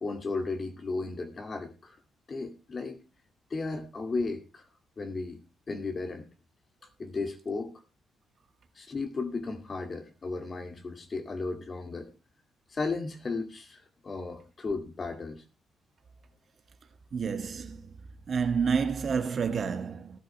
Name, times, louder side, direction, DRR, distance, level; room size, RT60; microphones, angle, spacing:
voice 1, 0.0-2.0 2.3-3.0 3.5-4.6 5.0-6.3 7.0-7.8 8.8-12.1 12.7-15.4, left 3 dB, 35° left, 2.3 m, -35 dB
voice 2, 17.1-17.9 18.3-20.2, right 6 dB, 50° right, 1.5 m, -29 dB
18.5 x 12.5 x 2.2 m
cardioid pair, 90°, 0 cm